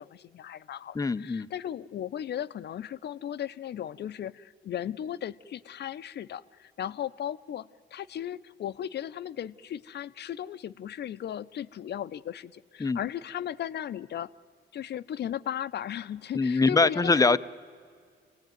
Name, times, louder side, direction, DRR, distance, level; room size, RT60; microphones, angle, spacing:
voice 1, 0.0-14.3 14.7-17.4, left 10 dB, 60° left, 14 dB, 0.7 m, -36 dB
voice 2, 0.9-1.5 12.8-13.0 16.3-17.4, left 3 dB, 15° left, 13 dB, 0.7 m, -23 dB
27.5 x 18.5 x 9.3 m, 2.1 s
cardioid pair, 90°, 20 cm